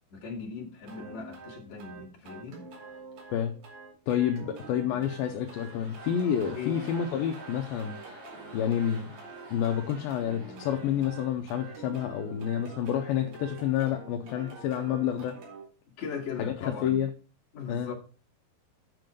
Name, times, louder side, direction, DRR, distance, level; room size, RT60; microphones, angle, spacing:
voice 1, 0.1-2.7 6.5-6.8 16.0-17.0 17.5-17.9, left 6 dB, 50° left, 3.4 m, -39 dB
sound 1, 0.9-15.6, right 3 dB, 75° right, 4.7 m, -46 dB
voice 2, 4.1-8.0 8.5-9.1 9.5-15.4 16.4-17.1 17.7-17.9, left 9 dB, 75° left, 2.5 m, -29 dB
sound 2, 5.2-13.3 13.6-13.7, right 1 dB, 45° right, 4.5 m, -50 dB
9.3 x 6.8 x 5.2 m
omnidirectional pair, 4.6 m